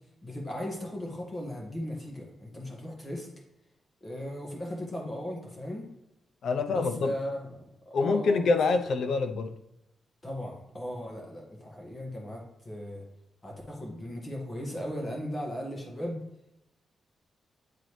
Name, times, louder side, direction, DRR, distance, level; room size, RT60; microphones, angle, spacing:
voice 1, 0.2-3.3 4.0-5.9 6.7-8.5 10.2-13.0 13.4-16.2, equal, 20° left, 1.7 m, -37 dB
voice 2, 6.4-7.1 7.9-9.5, left 4 dB, 65° left, 0.6 m, -26 dB
9.3 x 3.9 x 3.2 m
wide cardioid pair, 150°, 0 cm